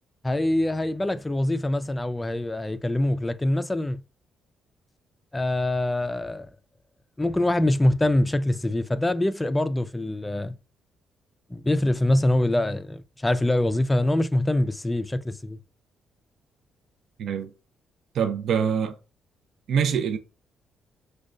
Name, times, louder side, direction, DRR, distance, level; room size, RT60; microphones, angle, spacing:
voice 1, 0.2-4.0 5.3-6.5 7.2-10.6 11.5-15.6, left 1 dB, 15° left, 0.3 m, -24 dB
voice 2, 17.2-17.5 18.1-19.0 19.7-20.2, right 7 dB, 70° right, 0.4 m, -24 dB
5.0 x 2.2 x 2.4 m
cardioid pair, 90°, 0 cm